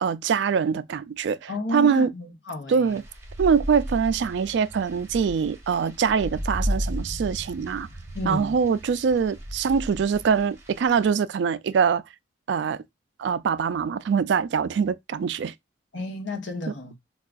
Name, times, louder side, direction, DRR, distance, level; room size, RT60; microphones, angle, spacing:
voice 1, 0.0-2.1 2.7-3.0 3.4-7.9 8.3-12.0 12.5-12.8 13.2-15.5, right 6 dB, 65° right, 0.3 m, -23 dB
voice 2, 1.5-3.0 8.1-8.6 15.9-16.9, left 2 dB, 70° left, 0.9 m, -32 dB
sound 1, 2.9-11.1, equal, 15° right, 0.7 m, -34 dB
4.5 x 2.4 x 2.3 m
head